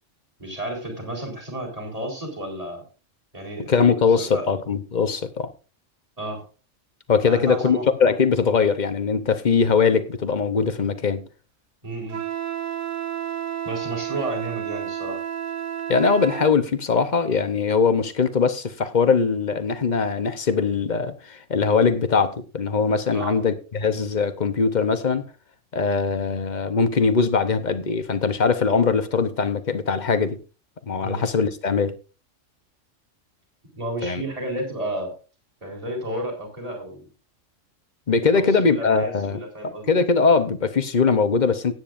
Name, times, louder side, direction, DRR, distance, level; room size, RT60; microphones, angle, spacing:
voice 1, 0.4-2.8 3.3-3.8 4.2-4.4 6.2-6.4 7.2-7.8 11.8-12.2 13.6-15.2 23.1-23.4 31.0-31.2 33.7-35.1 35.6-37.1 38.3-40.0, right 1 dB, 30° right, 4.5 m, -32 dB
voice 2, 3.7-5.5 7.1-11.3 15.9-25.3 25.7-30.4 30.9-31.9 34.0-34.2 38.1-39.4 39.9-41.7, left 5 dB, 40° left, 1.0 m, -21 dB
Wind instrument woodwind instrument, 12.1-16.6, right 10 dB, 90° right, 1.3 m, -31 dB
17.5 x 9.2 x 2.6 m
omnidirectional pair, 1.3 m